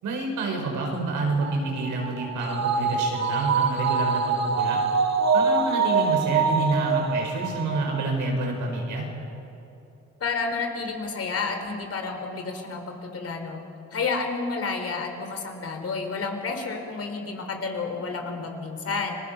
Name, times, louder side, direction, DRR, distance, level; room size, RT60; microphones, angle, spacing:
voice 1, 0.0-4.8 5.3-9.0, right 2 dB, 80° right, 0 dB, 5.6 m, -28 dB
sound 1, 1.4-8.1 8.4-8.5, right 5 dB, 60° right, 1.9 m, -25 dB
voice 2, 10.2-13.6 13.9-19.2, left 4 dB, 50° left, 4 dB, 4.0 m, -30 dB
29.5 x 20.0 x 6.1 m, 3.0 s
cardioid pair, 90°, 30 cm